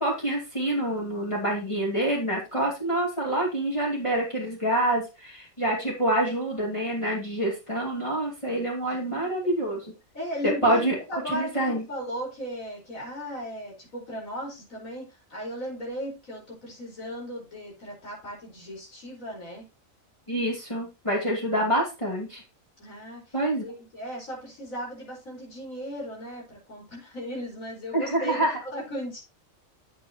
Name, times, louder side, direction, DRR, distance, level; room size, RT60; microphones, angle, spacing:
voice 1, 0.0-9.8 10.4-11.8 20.3-22.4 23.3-23.6 27.9-28.6, right 1 dB, 20° left, -4 dB, 2.7 m, -26 dB
voice 2, 8.9-9.3 10.1-19.7 22.8-29.2, equal, 80° left, -2 dB, 5.1 m, -37 dB
8.8 x 8.0 x 2.9 m, 0.27 s
omnidirectional pair, 1.4 m